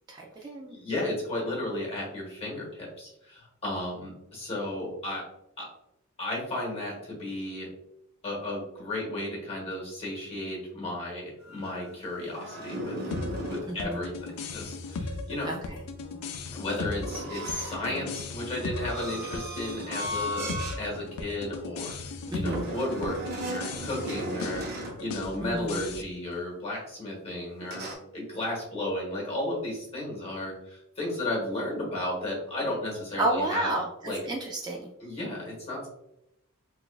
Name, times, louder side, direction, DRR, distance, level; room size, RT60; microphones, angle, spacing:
voice 1, 0.1-0.8 13.7-14.0 15.4-15.6 22.3-22.7 25.4-25.8 33.2-34.9, right 2 dB, 20° right, -1 dB, 0.3 m, -31 dB
voice 2, 0.7-5.2 5.6-5.7 6.2-7.7 8.2-12.9 13.5-15.5 16.5-33.7 34.0-34.2 35.0-35.9, left 1 dB, 30° left, -2 dB, 1.4 m, -34 dB
sound 1, 11.4-13.7 17.0-20.8 21.3-21.5 22.5-25.0 27.6-28.0, right 1 dB, 45° right, 0.7 m, -37 dB
sound 2, 13.1-26.0, left 3 dB, 70° left, 0.4 m, -38 dB
3.9 x 2.4 x 2.3 m, 0.84 s
head